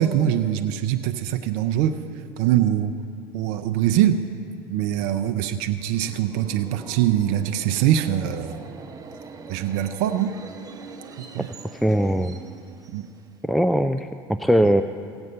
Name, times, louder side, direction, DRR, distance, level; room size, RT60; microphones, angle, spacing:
voice 1, 0.0-2.0 2.4-2.9 3.3-4.2 4.7-8.6 9.5-10.3 11.3-11.5 12.9-13.0 14.6-14.7, right 11 dB, 70° right, 7 dB, 0.6 m, -23 dB
Subway metro underground, 5.8-13.5, right 5 dB, 30° right, 1.1 m, -43 dB
voice 2, 11.8-12.4 13.4-14.8, equal, ahead, 10 dB, 0.4 m, -20 dB
16.5 x 8.0 x 5.5 m, 2.3 s
hypercardioid pair, 80°, 11 cm